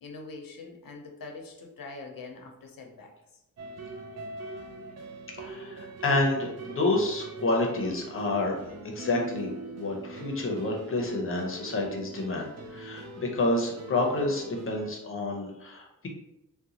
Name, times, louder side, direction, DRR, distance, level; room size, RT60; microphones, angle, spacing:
voice 1, 0.0-3.1, left 3 dB, 90° left, 2 dB, 0.7 m, -43 dB
sound 1, 3.6-14.9, right 2 dB, 50° right, 0.4 m, -42 dB
voice 2, 5.4-8.6 8.8-16.1, left 2 dB, 40° left, 0 dB, 0.6 m, -29 dB
3.8 x 2.2 x 2.8 m, 0.86 s
wide cardioid pair, 175°, 33 cm